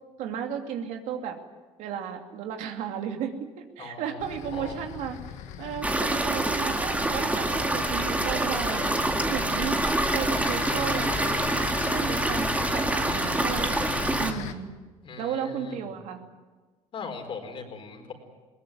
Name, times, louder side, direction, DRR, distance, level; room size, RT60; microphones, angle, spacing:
voice 1, 0.2-1.4 1.8-5.2 5.6-9.8 10.1-12.5 12.7-13.8 14.2-14.7 15.2-16.2, right 8 dB, 75° right, 4 dB, 2.8 m, -34 dB
voice 2, 3.8-4.8 15.0-15.8 16.9-18.1, left 4 dB, 45° left, 4 dB, 4.7 m, -40 dB
sound 1, 4.2-14.5, left 9 dB, 75° left, 1.6 m, -37 dB
sound 2, 5.8-14.3, right 2 dB, 10° right, 2.0 m, -26 dB
21.0 x 19.0 x 9.5 m, 1.3 s
cardioid pair, 105°, 12 cm